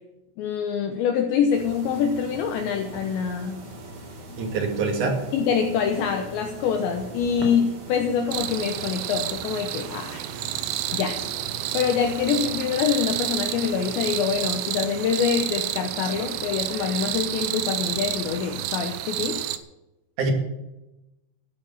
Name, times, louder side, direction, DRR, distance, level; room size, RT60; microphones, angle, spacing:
voice 1, 0.4-3.6 5.3-10.3 10.9-11.2 11.7-19.4, left 7 dB, 75° left, 4 dB, 3.0 m, -25 dB
sound 1, 1.5-14.3, right 1 dB, 65° right, 5.8 m, -41 dB
voice 2, 4.4-5.2 20.2-20.3, right 4 dB, 45° right, 2 dB, 3.0 m, -24 dB
sound 2, 8.3-19.6, right 13 dB, 85° right, 3.3 m, -30 dB
14.5 x 9.3 x 7.2 m, 0.97 s
omnidirectional pair, 5.9 m